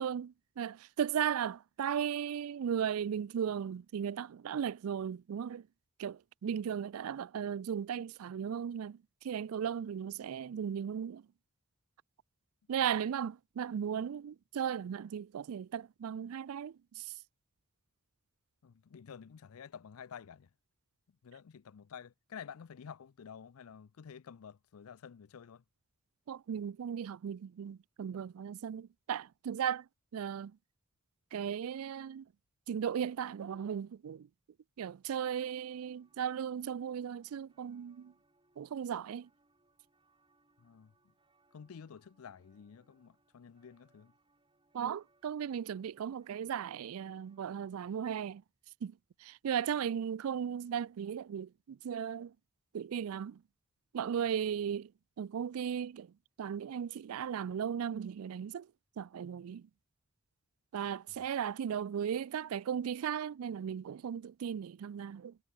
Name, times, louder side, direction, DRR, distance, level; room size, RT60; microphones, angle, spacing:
voice 1, 0.0-5.7 6.0-11.3 12.7-17.1 26.3-30.6 31.3-32.3 32.7-34.3 34.8-38.1 38.6-39.3 44.7-48.4 48.8-52.3 52.7-53.4 53.9-54.9 55.2-58.7 59.0-59.7 60.7-65.4, right 8 dB, 90° right, 0.4 m, -36 dB
voice 2, 18.6-20.5 21.2-25.6 40.6-40.9 41.5-44.1, left 7 dB, 85° left, 0.5 m, -50 dB
sound 1, 35.2-48.0, right 2 dB, 25° right, 6.0 m, -73 dB
head